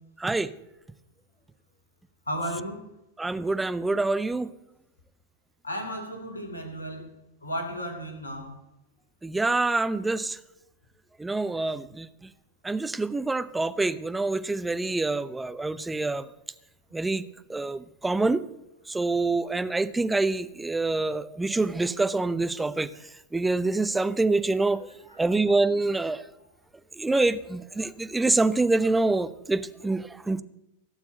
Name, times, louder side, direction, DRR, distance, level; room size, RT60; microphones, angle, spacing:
voice 1, 0.2-0.5 3.2-4.5 9.2-10.4 11.2-12.1 12.6-16.3 16.9-17.2 17.5-18.4 18.9-22.9 23.3-24.9 25.2-26.2 27.0-30.4, right 3 dB, 10° right, 13 dB, 0.7 m, -26 dB
voice 2, 2.3-2.8 5.6-7.1 7.4-8.5, equal, 80° left, 5 dB, 2.8 m, -34 dB
17.0 x 7.2 x 7.9 m, 0.90 s
figure-of-eight pair, 90°, 0 cm